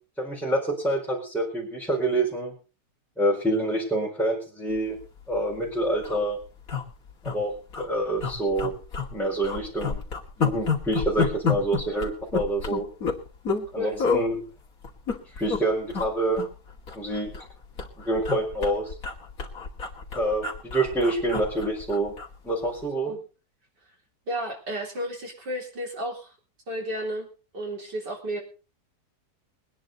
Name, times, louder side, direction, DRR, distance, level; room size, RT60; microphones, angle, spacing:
voice 1, 0.2-2.5 3.2-5.0 5.3-6.4 7.2-8.7 9.1-10.0 10.4-12.9 13.7-14.4 15.4-16.4 16.9-17.3 18.1-18.9 20.1-22.1 22.4-23.1, right 1 dB, ahead, -4 dB, 4.3 m, -27 dB
sound 1, 5.2-5.4 5.7-5.8 6.0-6.2 6.7-7.4 7.7-7.8 8.2-9.1 9.4-13.7 14.0-14.2 14.8-15.6 15.9-16.1 16.4-17.5 17.8-22.3 22.7-22.8, left 5 dB, 55° left, 2.8 m, -29 dB
voice 2, 24.3-26.3 26.7-27.3 27.5-28.4, equal, 85° right, 1 dB, 4.5 m, -32 dB
22.5 x 10.0 x 4.0 m, 0.34 s
omnidirectional pair, 1.8 m